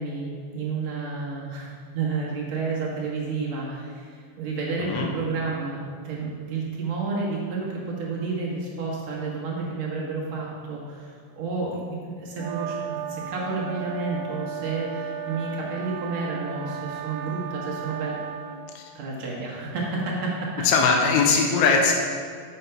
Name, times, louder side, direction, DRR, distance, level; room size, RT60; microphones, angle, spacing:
voice 1, 0.0-18.2 18.9-20.7, right 4 dB, 65° right, -4 dB, 1.8 m, -30 dB
sound 1, 12.4-18.6, right 8 dB, 85° right, 2.8 m, -35 dB
voice 2, 20.6-21.9, left 5 dB, 80° left, 1 dB, 2.6 m, -20 dB
6.7 x 6.0 x 5.7 m, 2.1 s
omnidirectional pair, 4.4 m